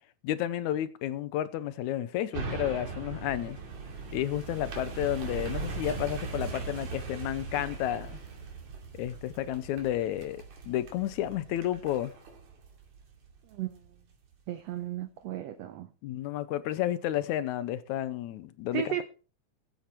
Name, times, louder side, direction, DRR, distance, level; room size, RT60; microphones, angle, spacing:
voice 1, 0.2-3.6 4.1-8.2 8.9-12.1 16.0-19.0, left 12 dB, 75° left, 2.0 m, -31 dB
sound 1, 2.3-13.8 14.3-14.4, right 4 dB, 60° right, 3.7 m, -39 dB
voice 2, 13.5-13.8 14.5-15.9 18.7-19.0, right 11 dB, 80° right, 1.5 m, -34 dB
15.0 x 8.3 x 4.4 m
omnidirectional pair, 3.7 m